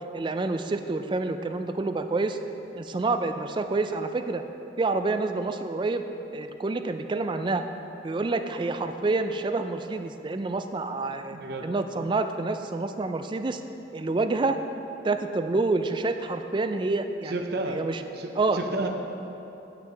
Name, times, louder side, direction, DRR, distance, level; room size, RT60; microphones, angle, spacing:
voice 1, 0.0-2.4 2.7-4.4 4.8-6.1 6.3-7.6 8.0-11.4 11.6-13.6 13.9-14.6 15.0-17.3 17.7-18.0 18.4-18.6, right 3 dB, 25° right, 8 dB, 0.3 m, -28 dB
voice 2, 11.3-11.7 17.3-17.8 18.1-18.9, right 2 dB, 55° right, 4 dB, 0.7 m, -31 dB
9.2 x 8.8 x 3.4 m, 3.0 s
head